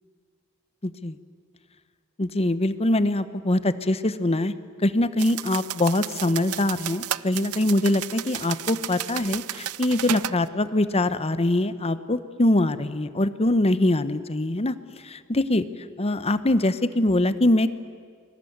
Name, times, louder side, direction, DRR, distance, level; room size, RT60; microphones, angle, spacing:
voice 1, 0.8-1.2 2.2-4.5 4.8-14.8 15.0-15.7 16.0-17.7, left 1 dB, 30° left, 13 dB, 0.9 m, -23 dB
sound 1, 5.2-10.4, right 12 dB, 85° right, 0.6 m, -33 dB
29.5 x 22.5 x 8.0 m, 2.1 s
head